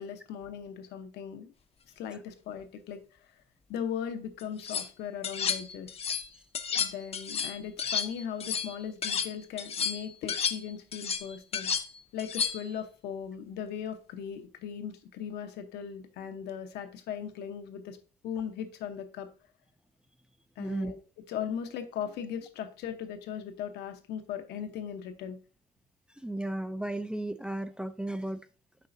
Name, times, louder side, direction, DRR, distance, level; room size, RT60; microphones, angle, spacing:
voice 1, 0.0-1.5 2.0-3.3 3.7-6.0 6.8-11.7 12.1-18.0 18.2-19.3 20.6-21.0 21.3-25.4, left 8 dB, 80° left, 1.0 m, -38 dB
sound 1, 4.4-4.9 5.2-6.3 6.5-9.3 9.6-12.7, left 6 dB, 35° left, 0.6 m, -32 dB
voice 2, 20.6-20.9 26.2-28.4, right 1 dB, 5° right, 0.3 m, -34 dB
7.4 x 4.9 x 2.6 m
cardioid pair, 110°, 17 cm